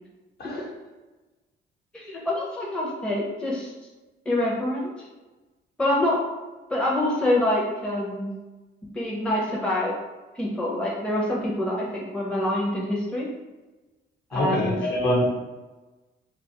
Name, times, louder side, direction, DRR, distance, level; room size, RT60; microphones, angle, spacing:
voice 1, 1.9-3.7 4.3-5.1 5.8-6.2 6.7-8.3 8.9-10.0 10.3-13.3 14.3-14.8, left 1 dB, 5° left, -4 dB, 0.5 m, -26 dB
voice 2, 14.3-15.3, left 1 dB, 55° left, -3 dB, 0.9 m, -24 dB
2.6 x 2.3 x 2.8 m, 1.2 s
cardioid pair, 90°, 20 cm